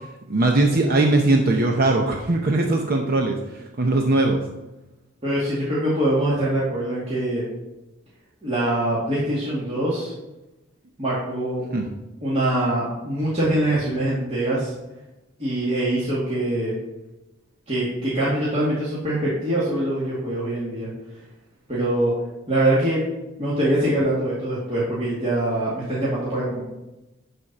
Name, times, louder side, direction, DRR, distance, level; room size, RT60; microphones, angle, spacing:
voice 1, 0.3-4.4 11.7-11.9, right 2 dB, 50° right, 2 dB, 0.8 m, -20 dB
voice 2, 5.2-7.4 8.4-10.1 11.0-11.6 12.2-14.7 15.4-16.8 17.7-20.9 21.7-22.1 22.5-23.0 23.4-26.6, right 1 dB, 30° right, -8 dB, 2.1 m, -23 dB
11.5 x 4.4 x 5.3 m, 1.0 s
head